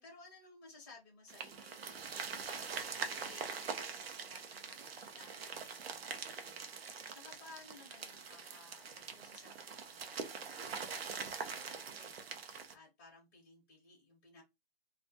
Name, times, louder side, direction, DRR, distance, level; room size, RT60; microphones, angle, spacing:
voice 1, 0.0-2.1 2.4-10.2 10.6-14.4, left 3 dB, 10° left, -3 dB, 0.5 m, -59 dB
sound 1, 1.3-12.7, right 5 dB, 70° right, 0.6 m, -44 dB
2.3 x 2.1 x 2.6 m, 0.21 s
hypercardioid pair, 165°, 32 cm